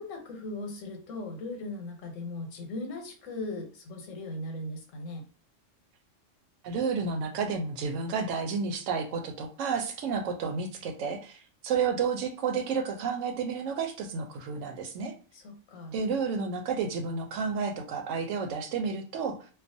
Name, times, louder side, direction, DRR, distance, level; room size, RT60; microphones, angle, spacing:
voice 1, 0.0-5.2 15.3-15.9, left 2 dB, 90° left, 4 dB, 1.1 m, -38 dB
voice 2, 6.6-15.1 15.9-19.4, right 5 dB, 80° right, 5 dB, 1.0 m, -31 dB
2.4 x 2.3 x 2.6 m, 0.39 s
omnidirectional pair, 1.3 m